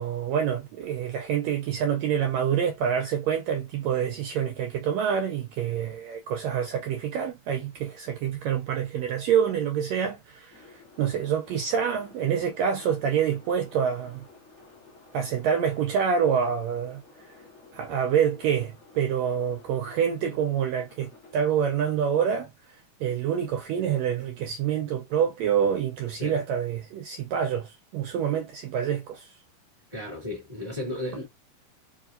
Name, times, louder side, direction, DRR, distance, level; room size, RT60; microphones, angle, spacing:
voice 1, 0.0-14.2 15.1-17.4 17.7-29.4, right 8 dB, 80° right, 1.6 m, -27 dB
sound 1, 10.5-21.6, left 3 dB, 40° left, 0.9 m, -53 dB
voice 2, 29.9-31.3, left 1 dB, 15° left, 1.4 m, -34 dB
4.6 x 2.9 x 2.5 m
omnidirectional pair, 3.6 m